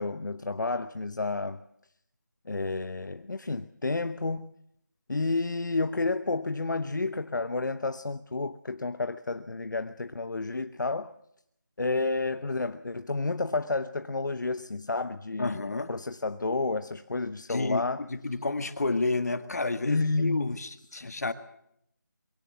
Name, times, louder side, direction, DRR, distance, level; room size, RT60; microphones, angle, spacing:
voice 1, 0.0-1.6 2.5-4.5 5.1-11.1 11.8-18.0 19.8-20.5 21.0-21.1, left 3 dB, 70° left, 0.9 m, -30 dB
voice 2, 15.4-15.9 17.5-17.8 18.1-21.3, left 3 dB, 55° left, 1.7 m, -30 dB
23.0 x 17.5 x 7.7 m
figure-of-eight pair, 170°, 10 cm